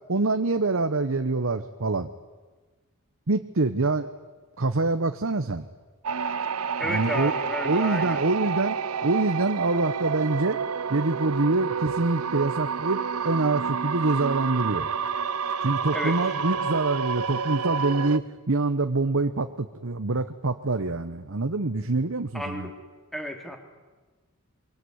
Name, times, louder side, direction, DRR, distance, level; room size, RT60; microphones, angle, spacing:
voice 1, 0.1-2.1 3.3-4.1 4.6-5.6 6.8-7.3 7.6-8.8 9.0-10.6 10.9-14.9 15.6-22.7, right 3 dB, 65° right, 8 dB, 1.1 m, -25 dB
sound 1, 6.0-18.2, right 6 dB, 90° right, 0.9 m, -29 dB
voice 2, 6.8-8.2 15.9-16.2 22.3-22.7 23.1-23.6, equal, ahead, 5 dB, 3.0 m, -32 dB
24.0 x 24.0 x 9.6 m, 1.3 s
head